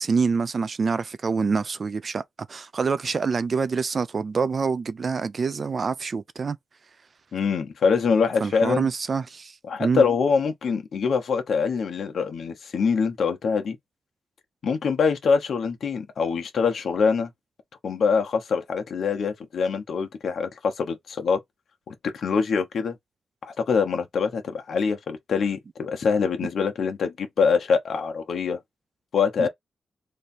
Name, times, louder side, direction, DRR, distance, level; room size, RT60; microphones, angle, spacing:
voice 1, 0.0-2.2 2.5-6.6 8.4-10.0 29.4-29.5, right 5 dB, 40° right, 0.4 m, -26 dB
voice 2, 7.3-8.9 9.7-13.8 14.6-17.3 17.8-21.4 21.9-22.9 23.4-28.6 29.1-29.5, left 5 dB, 60° left, 1.0 m, -24 dB
3.3 x 2.7 x 4.2 m
wide cardioid pair, 140°, 0 cm